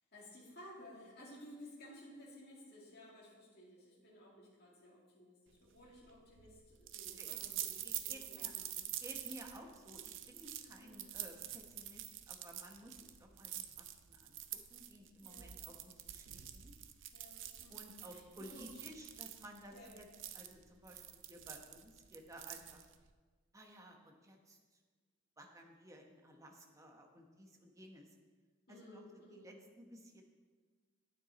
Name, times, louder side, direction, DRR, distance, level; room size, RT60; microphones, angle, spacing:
voice 1, 0.1-7.8 8.0-8.7 10.7-11.1 15.2-15.6 17.1-18.7 19.7-20.0 28.7-29.5, left 1 dB, 55° left, -5 dB, 2.2 m, -56 dB
sound 1, 5.7-23.1, right 11 dB, 65° right, 0.6 m, -47 dB
voice 2, 7.8-8.5 9.0-16.7 17.7-20.1 20.3-22.9 23.5-24.8 25.4-28.1 28.7-30.2, equal, 15° right, 2 dB, 1.0 m, -56 dB
9.3 x 8.8 x 4.1 m, 1.4 s
head